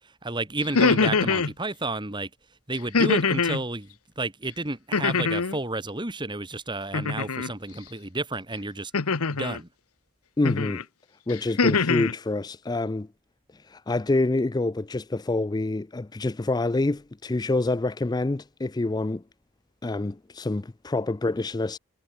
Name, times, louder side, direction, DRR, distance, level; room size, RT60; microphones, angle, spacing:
voice 1, 0.2-2.3 2.7-8.9 9.3-9.7, right 2 dB, 20° right, 1.9 m, -31 dB
sound 1, 0.6-1.5 2.9-3.6 4.9-5.6 6.9-7.5 8.9-9.6 10.4-10.8 11.3-12.1, left 4 dB, 80° left, 1.0 m, -23 dB
voice 2, 10.4-10.8 11.3-13.1 13.5-19.2 19.8-21.8, left 2 dB, 20° left, 0.4 m, -27 dB
head